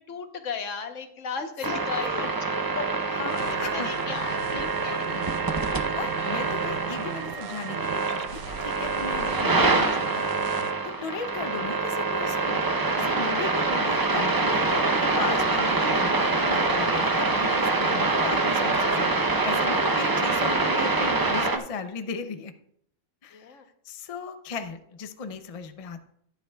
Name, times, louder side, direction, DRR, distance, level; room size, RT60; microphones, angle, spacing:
voice 1, 0.1-2.3 2.7-2.9 3.2-5.0 6.2-6.5 19.4-19.5 23.3-23.7, left 5 dB, 65° left, 6 dB, 1.3 m, -36 dB
voice 2, 1.4-2.3 3.2-3.9 4.5-5.3 6.0-12.6 13.0-22.5 23.2-23.6 23.8-26.0, left 5 dB, 50° left, 9 dB, 0.4 m, -36 dB
sound 1, 1.6-21.6, right 3 dB, 35° right, 0.3 m, -25 dB
sound 2, 3.3-10.7, right 8 dB, 70° right, 1.0 m, -38 dB
14.5 x 9.3 x 2.3 m, 0.70 s
omnidirectional pair, 1.5 m